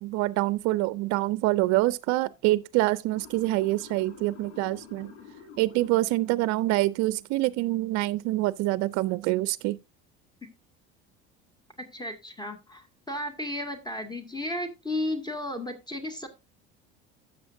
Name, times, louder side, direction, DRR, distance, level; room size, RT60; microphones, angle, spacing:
voice 1, 0.0-5.1 5.6-9.8, right 18 dB, 60° right, 0.5 m, -26 dB
Motor vehicle (road) / Siren, 3.1-7.3, left 6 dB, 80° left, 2.6 m, -50 dB
voice 2, 11.8-16.3, left 1 dB, 10° left, 2.0 m, -34 dB
12.5 x 7.8 x 2.6 m
hypercardioid pair, 75°, 32 cm